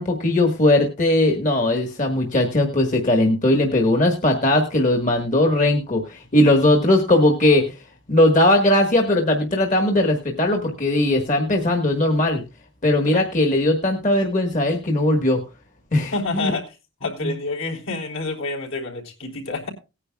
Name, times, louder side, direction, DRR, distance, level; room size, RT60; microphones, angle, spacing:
voice 1, 0.0-7.7 8.1-12.4 12.8-15.4 15.9-16.5 17.2-17.3, left 1 dB, 40° left, 3 dB, 1.4 m, -19 dB
voice 2, 16.1-16.6 17.0-19.7, left 3 dB, 75° left, -1 dB, 3.6 m, -28 dB
18.5 x 9.8 x 2.3 m, 0.29 s
head